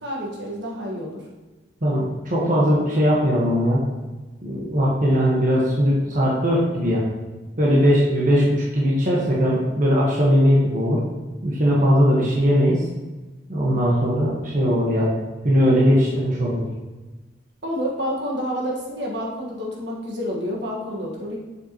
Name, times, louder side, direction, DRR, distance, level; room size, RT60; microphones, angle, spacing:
voice 1, 0.0-1.2 7.6-7.9 17.6-21.4, equal, 60° right, -2 dB, 1.6 m, -29 dB
voice 2, 1.8-3.8 4.4-7.0 7.6-11.0 11.4-12.8 13.5-15.1 15.4-16.7, equal, 45° right, -5 dB, 1.3 m, -19 dB
7.6 x 6.8 x 3.0 m, 1.2 s
head